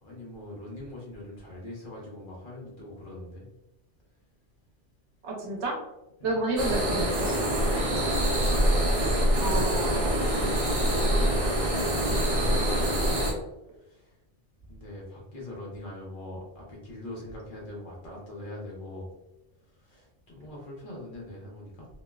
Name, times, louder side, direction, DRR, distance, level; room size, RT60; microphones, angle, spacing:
voice 1, 0.0-3.5 6.2-6.3 7.9-8.5 9.1-9.5 10.2-11.4 11.6-13.2 13.8-14.1 14.7-19.1 19.8-21.9, left 1 dB, 50° left, -3 dB, 0.9 m, -42 dB
voice 2, 5.2-5.8 6.2-7.5 9.4-10.2, right 2 dB, 80° right, 0 dB, 1.0 m, -30 dB
sound 1, 6.6-13.3, equal, 45° right, 0.5 m, -25 dB
2.9 x 2.1 x 2.2 m, 0.91 s
omnidirectional pair, 1.2 m